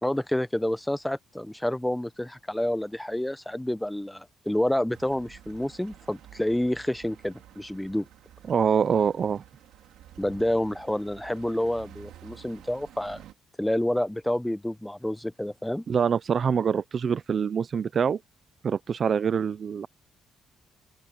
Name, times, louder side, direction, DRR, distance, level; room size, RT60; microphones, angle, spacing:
voice 1, 0.0-8.1 10.2-13.2 13.6-15.8, left 1 dB, 5° left, 1.0 m, -28 dB
sound 1, 4.9-13.3, right 12 dB, 85° right, 3.3 m, -51 dB
voice 2, 8.5-9.4 15.9-18.2 18.6-19.9, right 6 dB, 50° right, 0.6 m, -25 dB
open air
cardioid pair, 90°, 0 cm